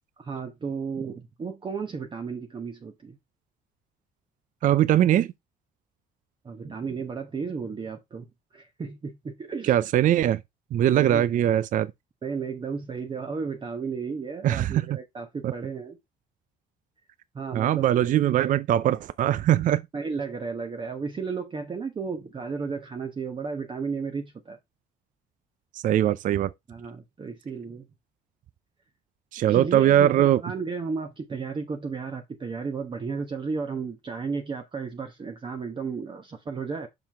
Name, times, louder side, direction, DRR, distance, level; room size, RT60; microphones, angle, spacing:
voice 1, 0.2-3.2 6.4-8.3 8.5-9.8 10.9-11.3 12.2-16.0 17.3-17.9 19.9-24.6 26.7-27.9 29.5-36.9, right 5 dB, 30° right, 1.0 m, -33 dB
voice 2, 4.6-5.3 9.7-10.4 10.7-11.9 14.4-14.8 15.4-15.5 17.5-19.8 25.7-26.5 29.3-30.4, right 11 dB, 50° right, 0.5 m, -21 dB
6.9 x 5.9 x 3.4 m
cardioid pair, 110°, 17 cm